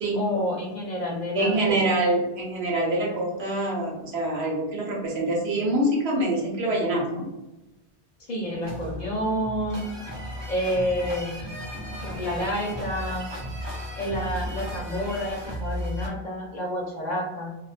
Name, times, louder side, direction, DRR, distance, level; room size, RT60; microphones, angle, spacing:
voice 1, 0.1-1.8 8.2-9.8 10.5-11.5 12.0-13.3 14.0-17.5, equal, 55° left, -1 dB, 0.6 m, -29 dB
voice 2, 1.4-7.3, right 1 dB, 80° right, -1 dB, 1.0 m, -25 dB
sound 1, 8.6-16.1, equal, 35° right, 0.5 m, -35 dB
2.3 x 2.2 x 2.4 m, 1.0 s
omnidirectional pair, 1.0 m